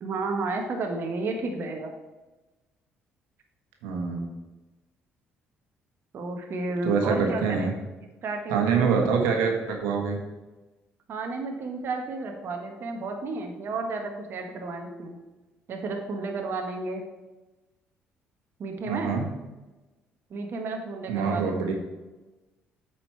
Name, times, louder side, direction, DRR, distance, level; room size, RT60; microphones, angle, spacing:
voice 1, 0.0-1.9 6.1-7.7 8.2-8.9 11.1-15.2 15.7-17.0 18.6-19.2 20.3-21.7, right 3 dB, 55° right, 3 dB, 1.2 m, -32 dB
voice 2, 3.8-4.3 6.8-7.7 8.5-10.2 18.9-19.2 21.1-21.7, right 5 dB, 90° right, 2 dB, 1.4 m, -25 dB
8.8 x 5.0 x 4.5 m, 1.1 s
supercardioid pair, 70°, 5 cm